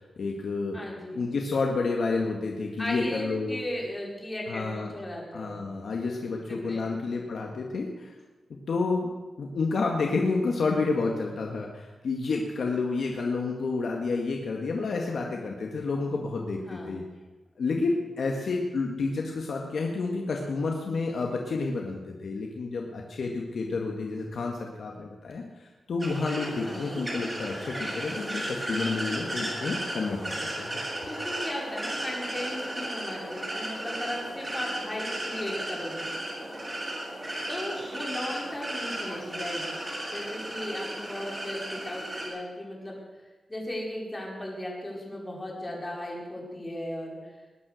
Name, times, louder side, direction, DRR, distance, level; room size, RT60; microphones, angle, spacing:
voice 1, 0.0-0.8 1.1-3.6 4.5-4.9 5.3-8.1 8.7-9.1 9.4-17.0 17.6-30.8, left 3 dB, 70° left, 1 dB, 1.9 m, -30 dB
voice 2, 0.7-1.2 2.8-5.6 6.7-6.8 16.7-17.0 26.6-26.8 31.1-36.1 37.5-39.6 40.1-43.0 43.5-47.2, left 1 dB, 20° left, -2 dB, 4.9 m, -36 dB
sound 1, 26.0-42.3, right 1 dB, 20° right, 7.4 m, -35 dB
sound 2, 35.5-36.2 36.5-41.4, right 1 dB, 40° right, 6.4 m, -51 dB
20.5 x 10.0 x 6.5 m, 1.2 s
wide cardioid pair, 110°, 0 cm